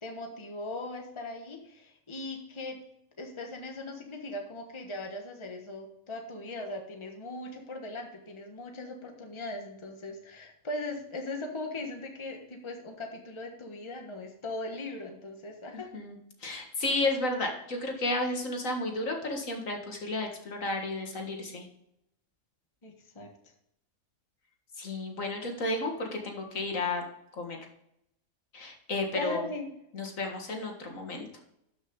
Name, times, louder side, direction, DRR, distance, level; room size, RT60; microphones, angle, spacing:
voice 1, 0.0-2.8 3.2-15.9 22.8-23.3 29.1-29.7, left 2 dB, 20° left, 3 dB, 1.3 m, -39 dB
voice 2, 15.9-21.7 24.8-27.1 27.4-27.6 28.5-29.5 29.9-31.3, left 2 dB, 70° left, 2 dB, 2.1 m, -32 dB
12.5 x 6.2 x 3.8 m, 0.77 s
omnidirectional pair, 1.4 m